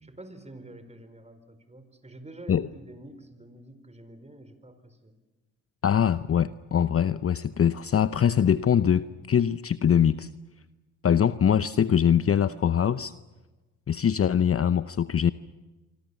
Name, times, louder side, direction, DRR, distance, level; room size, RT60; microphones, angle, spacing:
voice 1, 0.0-5.1, right 1 dB, 15° right, 10 dB, 4.8 m, -47 dB
voice 2, 5.8-10.3 11.0-13.1 13.9-15.3, left 8 dB, 35° left, 14 dB, 0.8 m, -23 dB
26.0 x 25.5 x 7.2 m, 1.2 s
hypercardioid pair, 55°, 42 cm